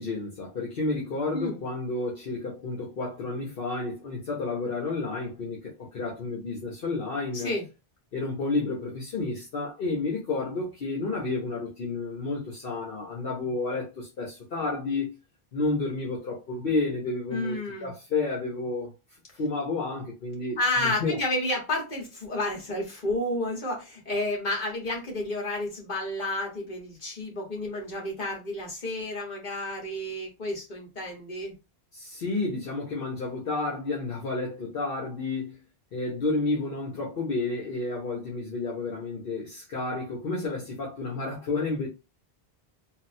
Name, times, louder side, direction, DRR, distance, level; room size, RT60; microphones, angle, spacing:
voice 1, 0.0-7.5 8.1-15.2 15.5-18.9 19.4-21.2 31.9-35.6 35.9-41.9, left 3 dB, 65° left, 1.1 m, -31 dB
voice 2, 7.3-7.6 17.3-17.9 20.6-31.5, left 1 dB, 50° left, 1.4 m, -31 dB
3.8 x 2.1 x 2.6 m
omnidirectional pair, 1.0 m